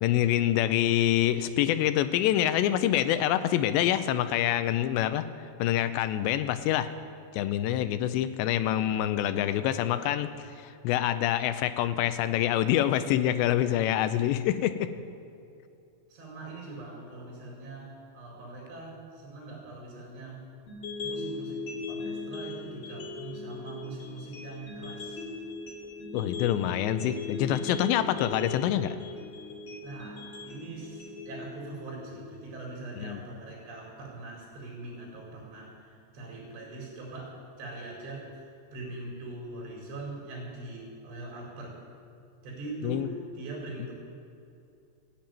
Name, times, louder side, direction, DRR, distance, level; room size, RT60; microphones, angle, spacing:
voice 1, 0.0-5.2 5.6-6.9 7.3-10.3 10.6-14.9 26.1-29.0 33.0-33.2 42.8-43.1, left 12 dB, 90° left, 11 dB, 2.9 m, -26 dB
voice 2, 16.1-20.4 21.0-21.6 21.9-25.2 29.8-41.8 42.4-43.9, right 2 dB, 75° right, -3 dB, 6.4 m, -42 dB
sound 1, 20.7-32.7, left 3 dB, 45° left, 3.6 m, -39 dB
15.0 x 10.5 x 9.1 m, 2.5 s
omnidirectional pair, 5.0 m